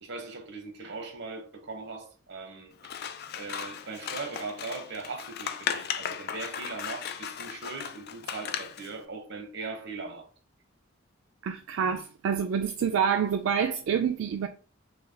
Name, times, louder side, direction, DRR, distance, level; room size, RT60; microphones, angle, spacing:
voice 1, 0.0-3.0 3.3-10.3, right 4 dB, 60° right, 0.9 m, -40 dB
Scissors, 2.8-8.9, left 8 dB, 55° left, 0.4 m, -36 dB
voice 2, 11.4-14.5, right 7 dB, 80° right, 0.3 m, -27 dB
3.3 x 2.2 x 3.3 m
head